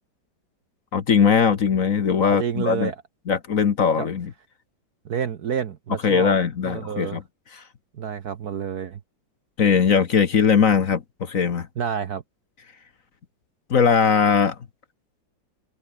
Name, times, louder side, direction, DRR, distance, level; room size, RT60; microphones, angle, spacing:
voice 1, 0.9-2.9 3.3-4.3 6.0-7.2 7.6-7.7 9.6-11.7 13.7-14.6, left 6 dB, 45° left, 1.5 m, -20 dB
voice 2, 2.2-2.9 4.0-4.1 5.0-6.3 6.6-7.2 8.0-9.0 11.8-12.2, right 7 dB, 55° right, 1.5 m, -29 dB
omnidirectional pair, 2.1 m